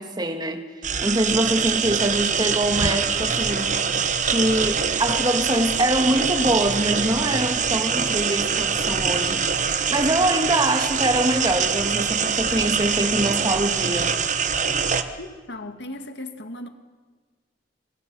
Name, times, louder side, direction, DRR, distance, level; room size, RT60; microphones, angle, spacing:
voice 1, 0.0-3.8 4.2-14.2, right 1 dB, 25° right, 1.9 m, -24 dB
sound 1, 0.8-15.0, right 6 dB, 45° right, 1.2 m, -24 dB
voice 2, 15.2-16.7, left 1 dB, 75° left, 1.9 m, -36 dB
26.5 x 22.0 x 6.2 m
head